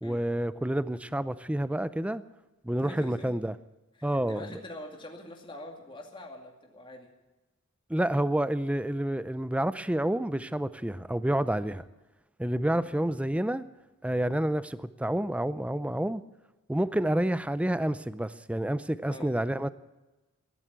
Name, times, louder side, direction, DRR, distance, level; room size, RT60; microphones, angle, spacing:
voice 1, 0.0-2.2 2.6-3.5 4.0-4.6 7.9-11.8 12.4-13.6 14.0-16.2 16.7-19.7, right 1 dB, 5° right, 15 dB, 0.4 m, -29 dB
voice 2, 2.8-3.3 4.0-7.1 11.6-11.8 12.7-12.9 16.9-17.0 19.1-19.3, left 1 dB, 20° left, 1 dB, 2.4 m, -45 dB
15.5 x 11.5 x 8.1 m, 1.1 s
head